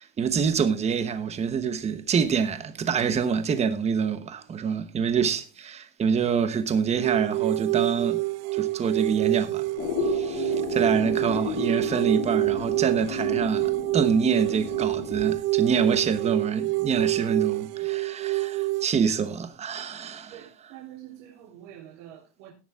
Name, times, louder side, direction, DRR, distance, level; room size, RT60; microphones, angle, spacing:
voice 1, 0.0-8.2 8.5-9.7 10.0-20.3, right 6 dB, 20° right, 1.0 m, -26 dB
sound 1, 7.0-18.9, right 22 dB, 45° right, 0.5 m, -27 dB
sound 2, 9.8-15.3, left 7 dB, 65° left, 2.8 m, -33 dB
voice 2, 20.3-22.5, right 11 dB, 75° right, 3.8 m, -46 dB
17.0 x 7.0 x 3.6 m
cardioid pair, 170°, 35 cm